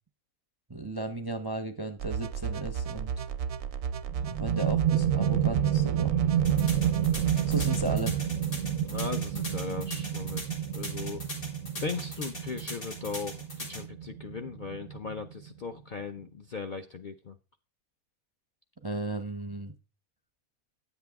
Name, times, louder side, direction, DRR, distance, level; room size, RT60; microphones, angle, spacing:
voice 1, 0.7-3.1 4.3-6.1 7.5-8.3 18.8-19.7, right 2 dB, 30° right, 9 dB, 0.4 m, -34 dB
sound 1, 2.0-8.0, right 7 dB, 65° right, 0.7 m, -34 dB
sound 2, 4.1-15.5, right 10 dB, 80° right, 1.1 m, -29 dB
sound 3, 6.4-13.8, left 1 dB, 85° left, 4.7 m, -40 dB
voice 2, 8.9-11.2 11.8-17.4, left 5 dB, 65° left, 6 dB, 0.4 m, -38 dB
9.6 x 8.1 x 3.5 m, 0.32 s
omnidirectional pair, 1.5 m